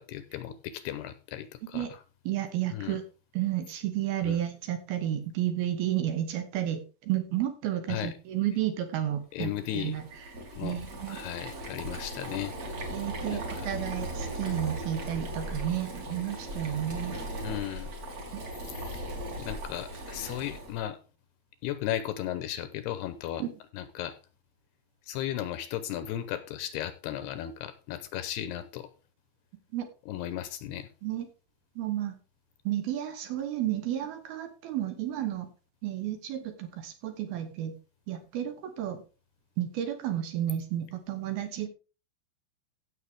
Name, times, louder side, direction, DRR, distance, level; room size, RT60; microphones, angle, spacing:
voice 1, 0.0-1.9 2.7-3.0 4.2-4.4 7.9-8.1 9.3-10.0 10.6-10.8 11.1-12.6 13.3-13.4 17.4-17.9 19.4-21.0 21.6-23.4 23.7-24.2 25.1-28.9 30.1-30.9, left 12 dB, 80° left, 12 dB, 2.6 m, -35 dB
voice 2, 2.3-3.0 3.3-10.0 10.6-11.2 12.9-17.2 18.3-18.4 23.4-23.5 29.7-29.9 31.0-31.3 31.8-32.1 32.7-35.5 35.8-37.8 38.1-39.0 39.6-41.7, right 12 dB, 70° right, 8 dB, 2.7 m, -32 dB
Boiling, 9.5-20.8, right 1 dB, 40° right, 3.9 m, -38 dB
15.5 x 6.5 x 3.6 m, 0.33 s
omnidirectional pair, 5.1 m